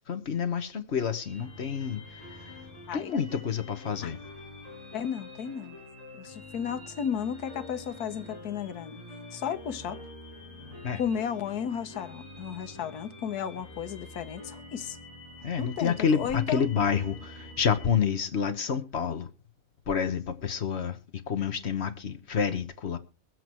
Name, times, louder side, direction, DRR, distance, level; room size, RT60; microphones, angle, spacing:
voice 1, 0.1-2.5 2.9-4.2 10.8-11.0 15.4-19.3 19.9-21.0 21.3-23.0, left 7 dB, 50° left, 1.3 m, -29 dB
sound 1, 1.2-17.9, left 2 dB, 25° right, 7.8 m, -46 dB
voice 2, 2.9-3.2 4.0-4.1 4.9-5.8 6.2-9.0 9.3-10.0 11.0-15.0 15.6-16.7, left 8 dB, 90° left, 1.5 m, -34 dB
23.5 x 7.8 x 3.0 m
omnidirectional pair, 1.6 m